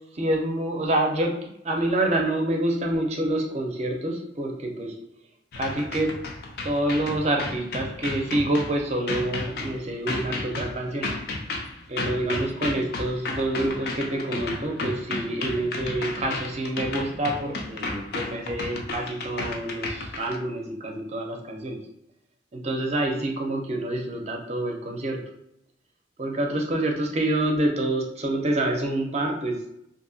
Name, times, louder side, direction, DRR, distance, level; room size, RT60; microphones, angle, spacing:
voice 1, 0.1-1.4 1.6-5.0 5.6-6.2 6.6-11.1 11.9-21.8 22.5-25.2 26.2-29.6, right 1 dB, 35° right, 1 dB, 0.5 m, -27 dB
sound 1, 5.5-20.4, left 3 dB, 55° left, 0.4 m, -33 dB
2.8 x 2.6 x 2.6 m, 0.79 s
head